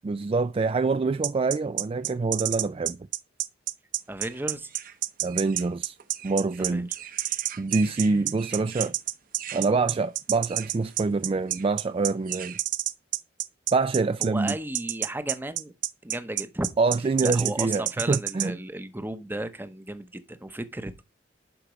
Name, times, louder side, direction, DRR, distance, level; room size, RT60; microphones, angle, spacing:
voice 1, 0.0-3.0 5.2-6.0 6.2-6.9 7.6-8.9 9.5-12.6 13.7-14.6 16.8-18.6, right 3 dB, 30° right, 0.3 m, -25 dB
sound 1, 1.2-18.5, right 14 dB, 75° right, 0.6 m, -28 dB
voice 2, 4.1-4.7 6.7-6.9 14.2-15.7 16.0-16.7 17.2-21.0, right 1 dB, 10° right, 0.8 m, -34 dB
sound 2, 4.2-12.6, right 10 dB, 50° right, 0.9 m, -44 dB
11.5 x 4.9 x 3.1 m
head